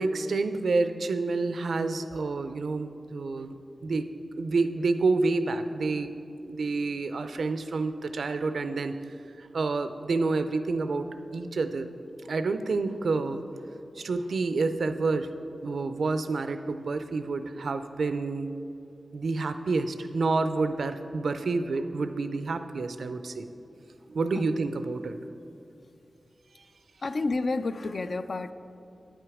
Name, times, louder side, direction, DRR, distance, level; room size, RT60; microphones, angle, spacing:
voice 1, 0.0-4.1 4.4-6.1 6.5-9.0 9.5-11.9 12.3-13.4 14.0-15.3 15.6-18.5 19.1-23.5 24.1-25.2, right 3 dB, 80° right, 10 dB, 0.5 m, -28 dB
voice 2, 27.0-28.5, left 3 dB, 60° left, 11 dB, 0.4 m, -30 dB
9.5 x 7.9 x 4.9 m, 2.7 s
wide cardioid pair, 85°, 0 cm